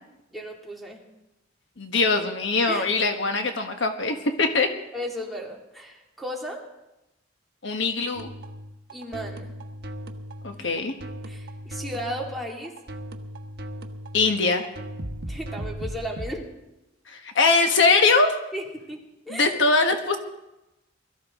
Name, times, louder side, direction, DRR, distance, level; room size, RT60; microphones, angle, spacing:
voice 1, 0.3-1.0 2.7-2.9 4.9-6.6 8.9-9.5 10.5-10.7 11.2-12.7 15.3-16.5 18.5-19.6, equal, ahead, -1 dB, 2.5 m, -35 dB
voice 2, 1.8-4.7 7.6-8.3 10.4-10.9 14.1-14.7 17.1-18.3 19.3-20.2, left 3 dB, 70° left, 5 dB, 1.3 m, -22 dB
sound 1, 8.1-16.3, equal, 55° right, 1.2 m, -37 dB
22.0 x 13.5 x 3.7 m, 0.95 s
head